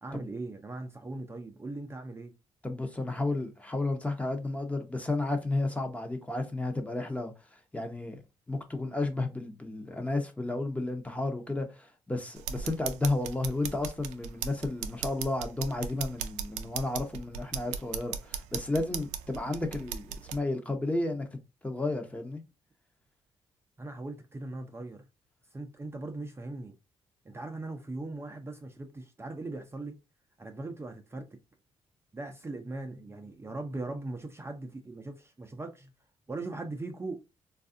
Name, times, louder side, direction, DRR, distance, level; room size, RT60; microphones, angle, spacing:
voice 1, 0.0-2.3 23.8-25.0 25.5-26.8 27.2-30.0 30.4-31.3 32.1-35.9 36.3-37.2, right 2 dB, 20° right, 0.6 m, -39 dB
voice 2, 2.6-7.3 7.7-8.2 8.5-21.3 21.6-22.4, left 2 dB, 10° left, 0.8 m, -32 dB
sound 1, 12.4-20.4, right 8 dB, 90° right, 0.4 m, -38 dB
3.3 x 2.4 x 2.6 m
supercardioid pair, 70°, 12 cm